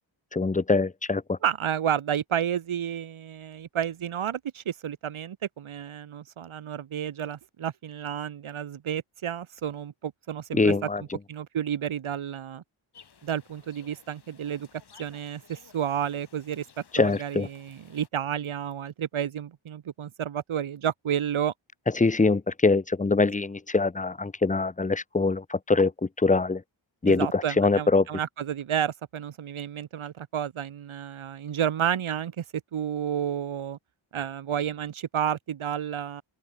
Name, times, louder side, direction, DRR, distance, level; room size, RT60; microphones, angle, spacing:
voice 1, 0.3-1.4 10.5-11.0 16.9-17.5 22.0-25.9 26.2-26.6 27.0-28.0, left 3 dB, 15° left, 1.0 m, -23 dB
voice 2, 1.4-10.7 11.0-12.6 13.2-14.7 15.0-16.7 17.0-21.5 27.1-32.4 32.7-33.8 34.1-36.2, right 9 dB, 85° right, 2.8 m, -31 dB
sound 1, 12.9-18.1, left 6 dB, 55° left, 7.8 m, -56 dB
open air
wide cardioid pair, 150°, 48 cm